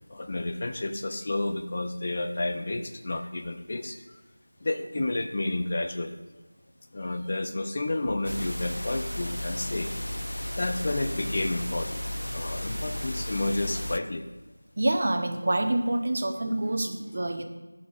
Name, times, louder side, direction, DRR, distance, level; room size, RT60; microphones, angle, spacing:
voice 1, 0.1-4.2 4.6-6.2 6.9-9.9 10.6-14.3, left 2 dB, 35° left, 6 dB, 0.5 m, -31 dB
sound 1, 8.2-14.0, left 1 dB, 85° left, 0.5 m, -34 dB
voice 2, 14.8-17.4, right 1 dB, 40° right, 5 dB, 0.9 m, -27 dB
13.5 x 5.9 x 2.4 m, 1.2 s
figure-of-eight pair, 170°, 0 cm